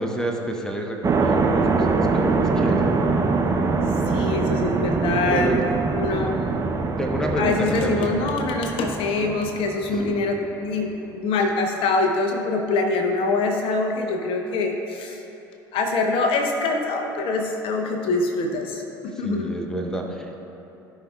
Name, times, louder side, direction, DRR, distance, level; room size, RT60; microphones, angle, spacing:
voice 1, 0.0-2.9 5.3-5.6 7.0-8.1 9.9-10.1 19.1-20.4, right 1 dB, 5° left, 1 dB, 1.1 m, -29 dB
sound 1, 1.0-10.1, right 4 dB, 30° right, 0.8 m, -23 dB
voice 2, 4.1-5.5 6.0-6.4 7.4-15.2 15.7-19.6, left 3 dB, 55° left, 3 dB, 0.9 m, -24 dB
16.0 x 5.6 x 2.4 m, 2.9 s
hypercardioid pair, 65°, 11 cm